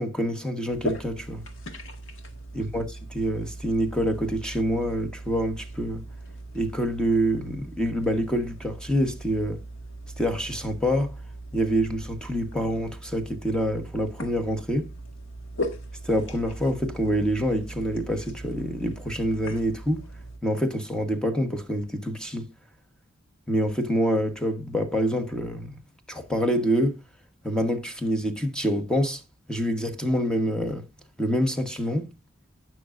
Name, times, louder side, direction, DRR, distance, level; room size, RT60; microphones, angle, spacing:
voice 1, 0.0-1.4 2.5-2.8 3.1-6.0 6.5-9.6 10.2-11.1 11.5-14.9 16.0-20.1 20.4-22.5 23.5-25.8 26.1-27.0 27.4-29.2 29.5-30.9 31.2-32.1, equal, 5° left, 1.2 m, -26 dB
sound 1, 0.7-20.4, equal, 75° left, 1.7 m, -39 dB
18.0 x 6.1 x 2.5 m
head